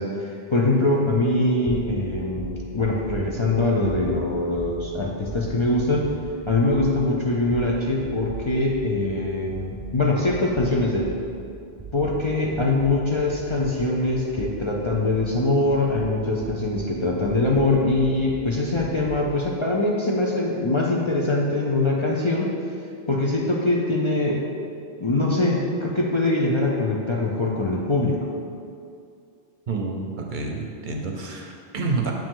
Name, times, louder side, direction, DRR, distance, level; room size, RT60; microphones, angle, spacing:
voice 1, 0.0-6.1 6.4-11.1 11.9-22.5 23.1-24.5 25.0-28.2, left 2 dB, 35° left, -3 dB, 0.5 m, -23 dB
sound 1, 1.7-9.3 9.5-13.8 14.1-16.9 17.2-19.3, right 6 dB, 15° right, 1.1 m, -38 dB
voice 2, 29.7-32.1, right 3 dB, 55° right, 1 dB, 0.8 m, -28 dB
7.3 x 5.1 x 3.7 m, 2.4 s
omnidirectional pair, 1.0 m